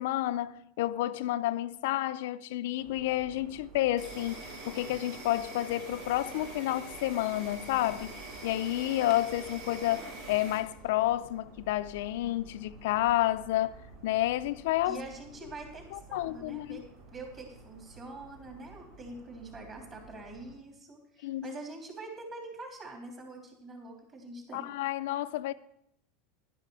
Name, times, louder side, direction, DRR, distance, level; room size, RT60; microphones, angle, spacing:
voice 1, 0.0-8.1 8.4-13.8 14.0-15.0 15.9-16.8 21.2-21.5 24.5-25.5, left 15 dB, 75° left, 0.4 m, -30 dB
sound 1, 2.8-20.5, right 3 dB, 65° right, 4.0 m, -53 dB
Insect, 4.0-10.6, right 2 dB, 80° right, 5.0 m, -44 dB
sound 2, 6.3-11.3, right 4 dB, 45° right, 1.6 m, -55 dB
voice 2, 14.8-16.8 17.1-24.7, right 2 dB, 25° right, 3.3 m, -45 dB
11.5 x 10.5 x 4.7 m
supercardioid pair, 155°, 0 cm